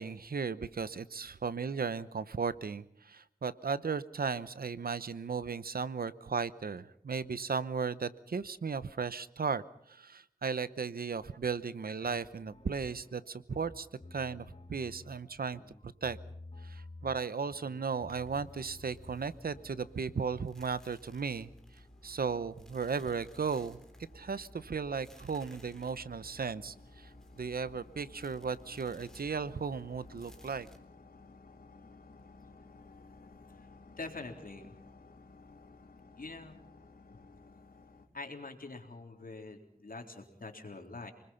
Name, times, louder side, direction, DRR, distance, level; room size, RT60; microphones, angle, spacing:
voice 1, 0.0-16.2 16.6-21.5 22.0-23.8 24.1-27.1 27.4-30.7, right 5 dB, 90° right, 16 dB, 0.9 m, -36 dB
sound 1, 12.0-19.9, left 2 dB, 45° left, 2.7 m, -52 dB
sound 2, 18.1-30.8, equal, 5° left, 3.6 m, -56 dB
sound 3, 20.9-38.1, left 3 dB, 90° left, 4.1 m, -58 dB
voice 2, 34.0-34.7 36.2-36.6 38.1-41.1, left 3 dB, 70° left, 3 dB, 3.7 m, -44 dB
28.5 x 20.5 x 5.7 m, 0.70 s
wide cardioid pair, 50°, 15 cm